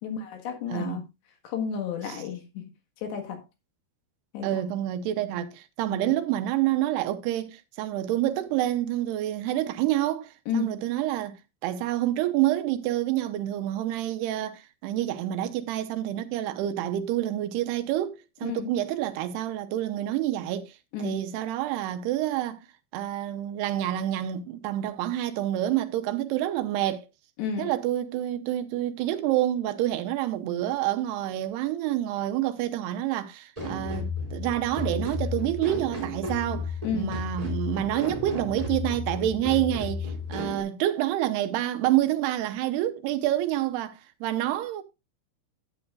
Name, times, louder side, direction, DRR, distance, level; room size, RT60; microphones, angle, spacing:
voice 1, 0.0-1.0 1.4-2.7 3.0-3.4 4.3-4.6 5.9-6.1 10.5-10.8 18.4-18.7 20.9-21.2 27.4-27.7 36.8-37.2, left 6 dB, 80° left, 3.8 m, -32 dB
voice 2, 0.7-1.0 2.1-2.2 4.4-11.4 11.6-20.7 21.0-22.6 22.9-27.1 27.6-44.8, right 13 dB, 85° right, 2.7 m, -28 dB
sound 1, 33.6-40.6, left 3 dB, 10° right, 2.2 m, -33 dB
13.0 x 8.6 x 2.4 m
omnidirectional pair, 4.8 m